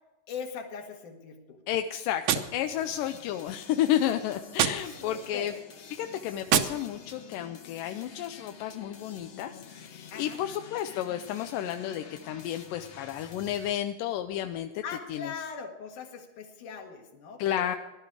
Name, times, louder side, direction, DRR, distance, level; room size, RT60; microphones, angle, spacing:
voice 1, 0.3-1.6 4.8-5.5 10.1-10.4 14.8-17.8, left 6 dB, 70° left, 3 dB, 3.2 m, -40 dB
voice 2, 1.7-5.5 5.9-14.8 15.1-15.3 17.4-17.8, left 11 dB, 85° left, 7 dB, 2.3 m, -31 dB
Gunshot gunfire, 2.2-3.3 4.5-5.4 6.5-7.3, right 10 dB, 70° right, 1.9 m, -30 dB
sound 1, 2.8-13.7, left 6 dB, 50° left, 1.7 m, -49 dB
18.0 x 12.0 x 4.8 m, 1.1 s
omnidirectional pair, 3.8 m